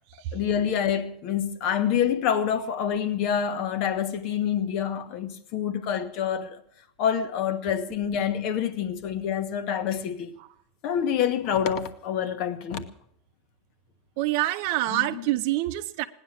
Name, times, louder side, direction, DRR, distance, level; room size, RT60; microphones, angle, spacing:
voice 1, 0.3-6.6 7.0-10.3 10.8-12.9 14.9-15.2, left 8 dB, 45° left, 1.4 m, -27 dB
voice 2, 14.2-16.0, right 16 dB, 55° right, 0.8 m, -26 dB
18.0 x 10.0 x 7.4 m
supercardioid pair, 175°, 0 cm